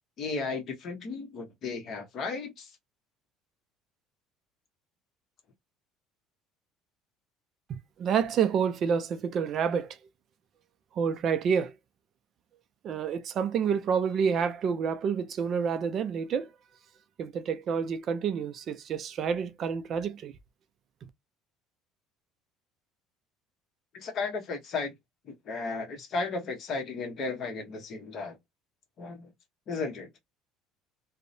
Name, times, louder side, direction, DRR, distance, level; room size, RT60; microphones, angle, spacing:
voice 1, 0.2-2.7 23.9-24.9 25.3-28.4 29.0-29.3 29.7-30.2, left 4 dB, 40° left, 0.8 m, -34 dB
voice 2, 7.7-10.0 11.0-11.7 12.8-16.5 17.2-20.3, right 7 dB, 40° right, 0.3 m, -28 dB
2.6 x 2.0 x 2.5 m
cardioid pair, 150°, 0 cm